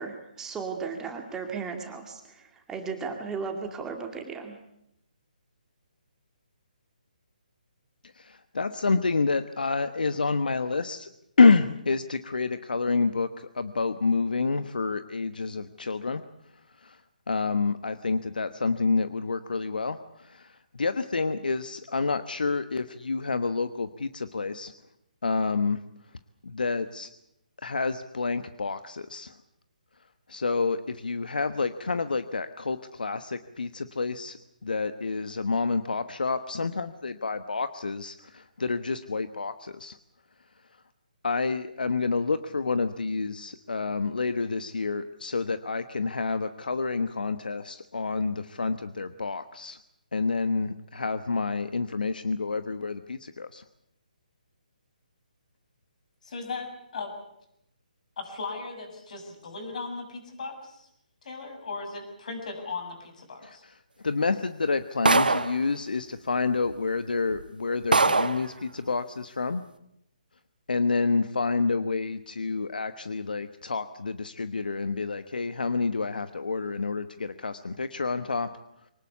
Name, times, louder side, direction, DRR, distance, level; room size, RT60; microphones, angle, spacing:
voice 1, 0.0-4.6, right 5 dB, 10° right, 3 dB, 2.2 m, -35 dB
voice 2, 8.2-11.1 11.4-16.2 16.8-17.0 17.3-24.7 25.2-25.8 26.4-27.1 27.6-29.3 30.3-40.0 41.2-49.8 50.1-53.6 63.4-63.7 64.0-69.6 70.7-78.5, left 4 dB, 80° left, 11 dB, 1.2 m, -28 dB
voice 3, 56.2-57.1 58.2-60.9 61.2-63.6, left 4 dB, 55° left, 6 dB, 7.1 m, -37 dB
sound 1, 65.1-65.6 66.7-66.8 67.3-67.4 67.9-68.5, right 3 dB, 85° right, 1.5 m, -22 dB
24.0 x 19.0 x 8.3 m, 0.78 s
figure-of-eight pair, 150°, 5 cm